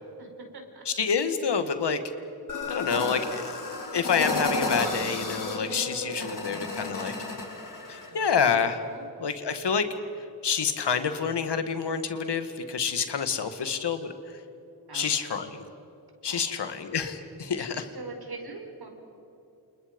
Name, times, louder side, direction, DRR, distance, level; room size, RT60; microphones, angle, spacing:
voice 1, 0.2-0.8 5.9-7.5 8.0-8.4 8.8-9.1 14.9-15.6 16.2-16.8 17.5-18.9, right 3 dB, 65° right, 3 dB, 5.1 m, -44 dB
voice 2, 0.9-2.0 2.7-3.6 3.9-7.1 7.9-8.8 9.2-9.9 10.4-14.1 14.9-15.5 16.2-17.8, left 6 dB, 85° left, 9 dB, 1.9 m, -28 dB
sound 1, 2.5-8.1, left 2 dB, 50° left, 4.7 m, -32 dB
29.0 x 29.0 x 5.3 m, 2.8 s
wide cardioid pair, 105°, 40 cm